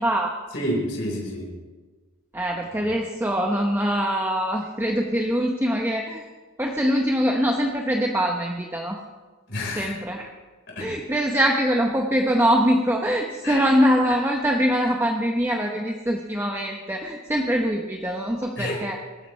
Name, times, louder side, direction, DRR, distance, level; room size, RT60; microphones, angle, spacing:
voice 1, 0.0-0.4 2.3-6.3 6.6-9.0 9.8-10.3 10.8-19.0, equal, 10° right, 1 dB, 0.9 m, -23 dB
voice 2, 0.5-1.6 9.5-9.9 10.7-10.9 13.4-13.6 18.6-18.8, equal, 55° left, -2 dB, 4.3 m, -29 dB
22.5 x 13.5 x 3.2 m, 1.3 s
head